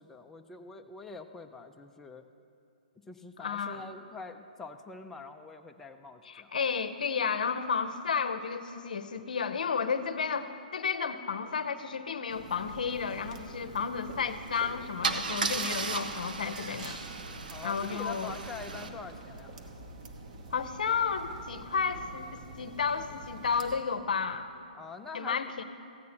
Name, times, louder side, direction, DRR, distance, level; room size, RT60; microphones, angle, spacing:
voice 1, 0.0-2.3 3.1-6.5 17.5-19.5 24.7-25.6, left 4 dB, 5° left, 3 dB, 0.4 m, -45 dB
voice 2, 3.4-3.8 6.2-17.0 17.6-18.4 20.5-24.5 25.1-25.6, left 6 dB, 70° left, 10 dB, 0.7 m, -32 dB
sound 1, 12.3-23.8, right 2 dB, 55° right, 1.1 m, -46 dB
Car / Engine starting / Idling, 14.3-14.5 15.0-18.9, right 4 dB, 75° right, 0.7 m, -35 dB
15.0 x 9.3 x 4.3 m, 2.6 s
hypercardioid pair, 130°, 5 cm